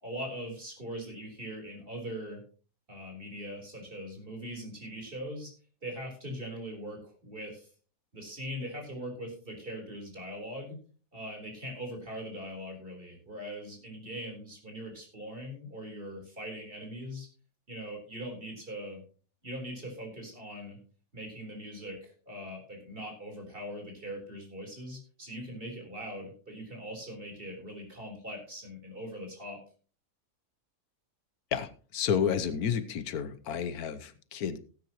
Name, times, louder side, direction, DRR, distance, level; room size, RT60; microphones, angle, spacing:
voice 1, 0.0-2.4 2.9-5.5 5.8-7.7 8.1-10.8 11.1-17.3 17.7-19.0 19.4-20.8 21.1-29.6, equal, 35° right, 1 dB, 4.2 m, -41 dB
voice 2, 31.5-34.6, left 8 dB, 80° left, 13 dB, 1.3 m, -31 dB
17.5 x 9.2 x 3.0 m, 0.39 s
omnidirectional pair, 1.6 m